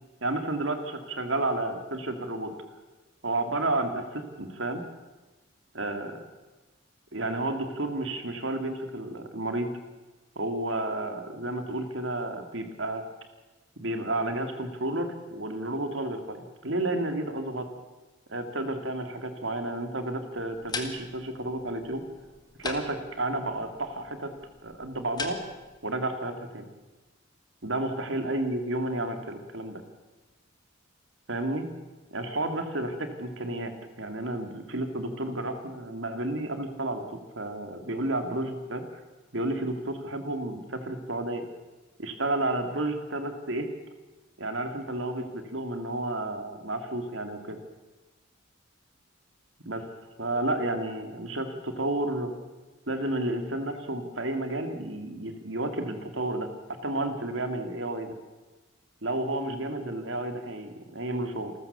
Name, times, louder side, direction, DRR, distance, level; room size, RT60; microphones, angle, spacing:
voice 1, 0.2-2.5 3.2-4.8 5.7-6.2 7.1-9.7 10.4-13.0 13.8-17.7 18.3-22.0 22.6-24.3 24.6-25.4 25.8-26.7 27.6-29.8 31.3-31.6 32.1-39.0 39.3-41.4 42.0-43.7 44.4-47.6 49.6-49.8 50.2-52.3 52.9-58.1 59.0-61.5, right 2 dB, 70° right, 7 dB, 2.7 m, -31 dB
sound 1, 20.4-25.8, left 3 dB, 20° left, 1.9 m, -41 dB
28.0 x 14.0 x 7.0 m, 1.2 s
head